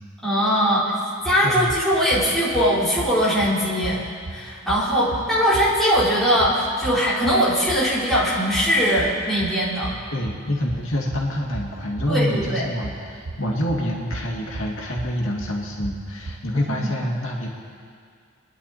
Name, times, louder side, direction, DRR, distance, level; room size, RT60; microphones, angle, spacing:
voice 1, 0.2-0.9 1.2-4.0 4.3-9.9 12.1-12.7 16.7-16.9, equal, ahead, -10 dB, 4.2 m, -21 dB
sound 1, 1.2-16.6, right 2 dB, 70° right, 0.7 m, -37 dB
voice 2, 10.1-17.5, left 1 dB, 80° left, -2 dB, 2.4 m, -26 dB
28.5 x 11.0 x 4.3 m, 2.2 s
head